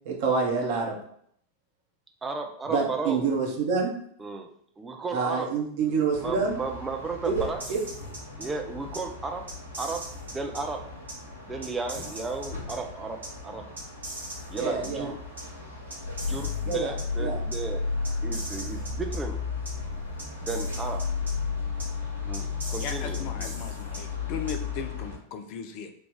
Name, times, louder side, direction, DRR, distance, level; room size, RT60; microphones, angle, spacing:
voice 1, 0.0-0.9 2.7-3.9 5.1-6.6 7.3-7.4 7.7-7.8 14.5-15.1 16.7-16.9 17.2-17.4, right 5 dB, 50° right, 0 dB, 1.0 m, -27 dB
voice 2, 2.2-3.2 4.2-4.5 4.8-5.5 6.2-7.6 8.4-9.5 9.8-10.8 11.5-13.6 14.5-15.2 16.3-17.8 18.2-19.4 20.4-21.1 22.3-23.5, right 4 dB, 15° right, 4 dB, 0.5 m, -34 dB
sound 1, 6.1-25.2, left 4 dB, 80° left, 1.1 m, -34 dB
sound 2, 7.6-8.5 8.9-9.0 9.5-10.6 11.1-11.2 11.6-12.7 13.2-13.3 13.8-14.9 15.4-15.5 15.9-17.0 17.5-17.6 18.0-19.2 19.7-19.8 20.2-21.3 21.8-21.9 22.3-24.0 24.5-24.6, right 2 dB, 75° right, 1.3 m, -40 dB
voice 3, 22.8-25.9, left 6 dB, 45° left, 7 dB, 0.5 m, -37 dB
3.3 x 2.4 x 3.7 m, 0.66 s
figure-of-eight pair, 90°, 0 cm